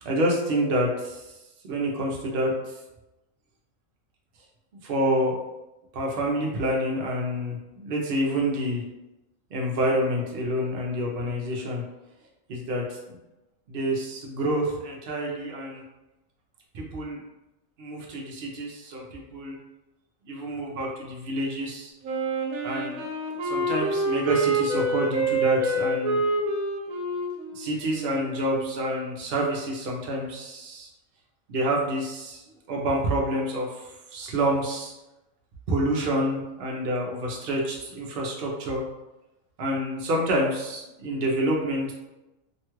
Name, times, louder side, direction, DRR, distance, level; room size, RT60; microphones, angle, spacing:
voice 1, 0.0-1.3 1.7-2.5 4.8-5.4 5.9-8.8 9.5-11.8 12.5-13.2 13.7-15.8 16.7-17.2 17.8-19.6 20.3-21.9 22.6-23.0 23.4-26.2 27.5-30.9 31.5-32.4 32.7-34.9 35.7-38.8 39.6-41.9, right 1 dB, 55° right, -1 dB, 0.7 m, -28 dB
Wind instrument woodwind instrument, 22.0-28.8, right 2 dB, 85° right, 1.0 m, -27 dB
3.0 x 2.3 x 3.0 m, 0.98 s
omnidirectional pair, 1.4 m